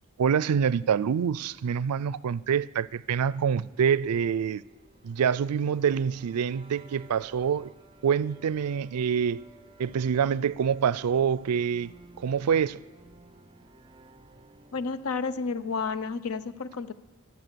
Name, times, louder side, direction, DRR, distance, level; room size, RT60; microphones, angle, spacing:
voice 1, 0.2-4.6 5.0-7.7 8.0-9.4 9.8-11.9 12.2-12.8, right 7 dB, 90° right, 0.4 m, -26 dB
sound 1, 2.4-15.3, right 2 dB, 25° right, 0.6 m, -55 dB
voice 2, 14.7-16.9, left 4 dB, 70° left, 0.6 m, -31 dB
23.0 x 8.3 x 6.8 m
head